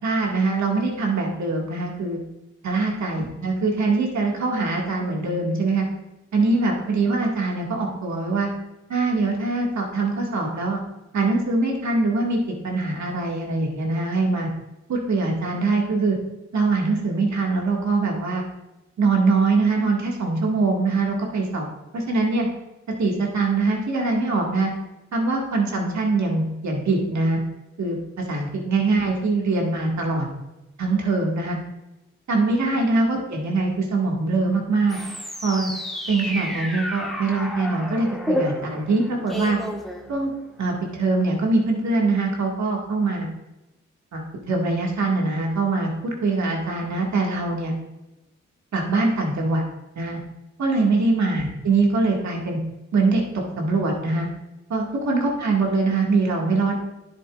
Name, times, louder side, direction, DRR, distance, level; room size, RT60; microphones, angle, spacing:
voice 1, 0.0-2.2 2.6-5.9 6.3-8.5 8.9-10.8 11.1-12.4 12.6-14.5 14.9-16.2 16.5-18.4 19.0-21.7 21.9-22.5 23.0-24.7 25.1-27.4 27.8-30.3 30.8-31.6 32.3-35.0 35.4-35.7 36.1-39.6 40.1-40.3 40.6-43.3 44.1-47.7 48.7-49.6 50.0-50.2 50.6-52.6 52.9-53.2 53.6-54.3 54.7-56.8, right 3 dB, 70° right, -1 dB, 2.1 m, -23 dB
sound 1, 34.9-40.6, equal, ahead, 1.6 m, -31 dB
10.0 x 7.8 x 2.5 m, 0.98 s
supercardioid pair, 45°, 30 cm